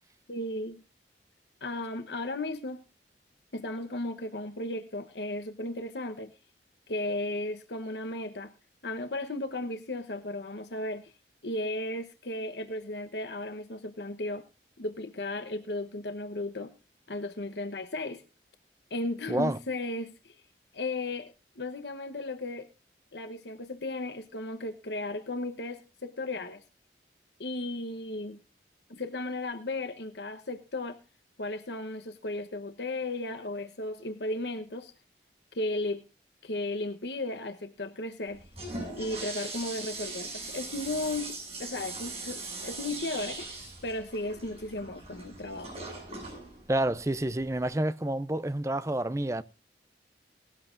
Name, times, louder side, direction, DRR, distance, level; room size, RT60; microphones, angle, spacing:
voice 1, 0.3-0.8 1.6-2.8 3.5-6.3 6.9-8.5 8.8-11.1 11.4-14.4 14.8-16.7 17.1-18.2 18.9-20.4 20.7-22.7 23.1-26.6 27.4-28.4 28.9-31.0 31.4-34.9 35.5-36.0 36.4-38.4 39.0-45.7, left 2 dB, 75° left, 1.1 m, -35 dB
voice 2, 19.3-19.6 46.7-49.4, right 1 dB, 15° right, 0.6 m, -29 dB
Toilet flush, 38.3-47.7, right 3 dB, 35° right, 8.0 m, -40 dB
19.0 x 13.0 x 2.6 m
head